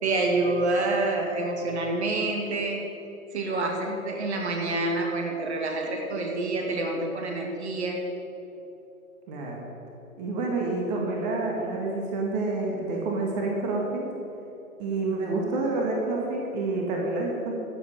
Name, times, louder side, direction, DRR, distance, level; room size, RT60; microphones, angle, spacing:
voice 1, 0.0-2.8 3.3-8.0, right 2 dB, 50° right, 1 dB, 2.3 m, -27 dB
voice 2, 9.3-9.7 10.2-14.0 14.8-17.5, right 2 dB, 30° right, -1 dB, 2.0 m, -28 dB
14.0 x 7.9 x 7.7 m, 3.0 s
figure-of-eight pair, 120°, 42 cm